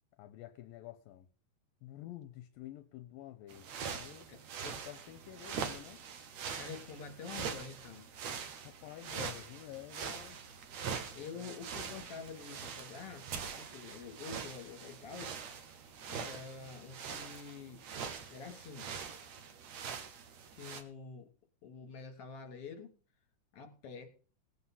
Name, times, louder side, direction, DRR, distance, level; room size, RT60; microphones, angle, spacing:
voice 1, 0.2-1.3 1.8-4.3 4.6-6.0 8.6-10.4 11.1-11.5, left 13 dB, 80° left, 9 dB, 2.5 m, -49 dB
sound 1, 3.5-20.8, right 6 dB, 60° right, 2.1 m, -43 dB
voice 2, 6.6-8.1 11.1-15.3 16.1-17.8 18.3-18.9 20.5-21.3 21.6-22.9 23.5-24.1, left 5 dB, 45° left, 4 dB, 3.6 m, -47 dB
18.5 x 7.9 x 5.7 m, 0.40 s
omnidirectional pair, 4.1 m